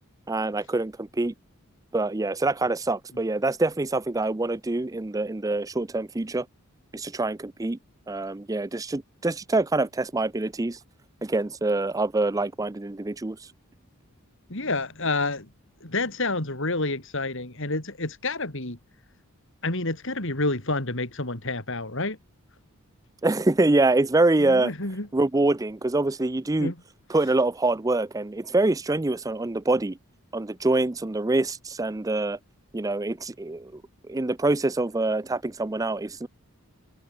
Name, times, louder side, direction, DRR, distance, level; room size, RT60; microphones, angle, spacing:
voice 1, 0.3-1.3 1.9-6.5 6.9-7.8 8.1-10.8 11.2-13.5 23.2-24.7 25.1-26.7 27.1-30.0 30.3-32.4 32.7-33.8 34.1-36.3, right 2 dB, 15° right, 0.5 m, -25 dB
voice 2, 14.5-15.5 15.8-18.8 19.6-22.2 24.4-25.1 26.6-26.8, left 2 dB, 60° left, 3.7 m, -29 dB
head